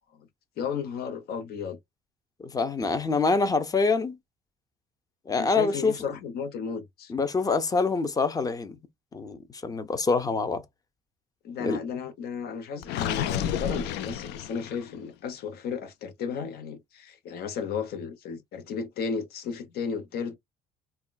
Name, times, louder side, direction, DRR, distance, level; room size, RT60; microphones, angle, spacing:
voice 1, 0.6-1.8 5.4-7.1 11.4-20.3, left 6 dB, 65° left, 0.8 m, -34 dB
voice 2, 2.4-4.2 5.3-5.9 7.1-8.8 9.1-10.6 11.6-11.8, left 4 dB, 20° left, 0.5 m, -25 dB
Gurgling, 12.8-15.0, left 9 dB, 85° left, 0.4 m, -31 dB
3.5 x 2.1 x 2.2 m
cardioid pair, 110°, 17 cm